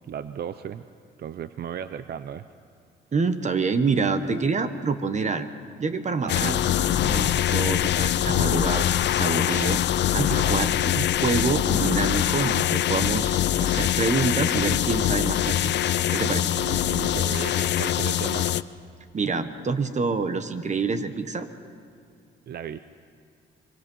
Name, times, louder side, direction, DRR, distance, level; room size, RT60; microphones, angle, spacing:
voice 1, 0.1-0.9 1.2-2.4 6.2-6.6 10.3-10.7 16.5-18.5 22.5-22.8, right 8 dB, 55° right, 12 dB, 0.6 m, -35 dB
voice 2, 3.1-5.5 5.8-9.8 10.1-15.7 16.1-16.5 19.1-21.5, right 4 dB, 35° right, 10 dB, 1.3 m, -27 dB
sound 1, 6.3-18.6, left 12 dB, 60° left, 0.6 m, -23 dB
25.0 x 23.5 x 5.6 m, 2.3 s
cardioid pair, 90°, 20 cm